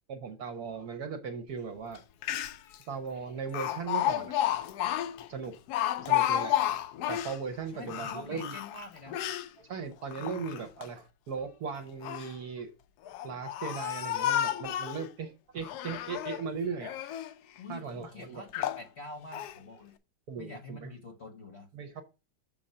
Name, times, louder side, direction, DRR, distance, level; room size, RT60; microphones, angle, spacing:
voice 1, 0.1-2.0 2.3-2.4 2.9-4.4 5.3-5.6 6.0-6.6 7.1-8.6 9.6-12.7 13.0-17.0 17.7-18.5 20.3-20.9 21.7-22.0, right 5 dB, 60° right, 1.1 m, -38 dB
Speech, 2.0-2.1 2.2-2.8 3.5-7.4 7.8-9.5 10.0-10.9 11.8-12.4 13.1-15.1 15.6-16.4 16.8-17.3 17.9-18.0 18.5-18.9 19.3-19.6, left 12 dB, 75° left, 0.9 m, -31 dB
voice 2, 7.7-9.2 10.2-10.6 17.6-19.9 20.4-21.7, left 2 dB, 45° left, 0.9 m, -46 dB
7.0 x 3.8 x 5.4 m
omnidirectional pair, 2.1 m